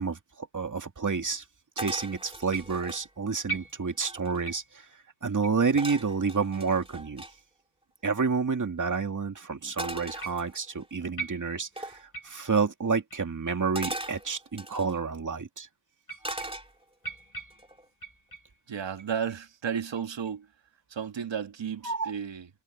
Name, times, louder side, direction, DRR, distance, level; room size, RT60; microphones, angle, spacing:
voice 1, 0.0-1.4 1.8-4.9 5.2-7.2 8.0-12.0 12.2-15.7 21.8-22.1, right 5 dB, 40° right, 2.5 m, -29 dB
sound 1, 1.8-3.1 3.7-3.8 3.9-4.6 5.8-7.3 9.8-10.9 11.8-12.0 13.8-15.0 16.2-17.1 17.5-17.9, right 1 dB, 10° right, 2.9 m, -39 dB
sound 2, 2.5-3.0 3.5-4.1 4.4-4.8 5.4-5.6 6.4-6.5 7.4-7.5 8.3-8.4 10.2-10.6 11.2-11.8 12.1-12.5 13.1-13.3 14.1-14.2 15.0-15.1 16.0-16.8 17.0-18.6 19.0-19.4 19.9-20.3, right 5 dB, 45° left, 5.1 m, -41 dB
voice 2, 18.7-20.5 20.9-22.5, right 7 dB, 70° right, 1.9 m, -33 dB
cardioid pair, 80°, 46 cm